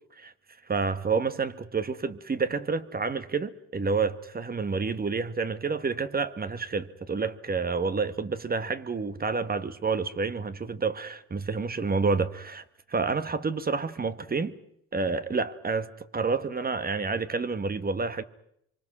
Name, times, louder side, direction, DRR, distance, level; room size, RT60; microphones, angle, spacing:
voice 1, 0.7-14.5 14.9-18.2, right 4 dB, 30° right, 1.2 m, -29 dB
25.0 x 24.5 x 6.0 m
cardioid pair, 90°, 30 cm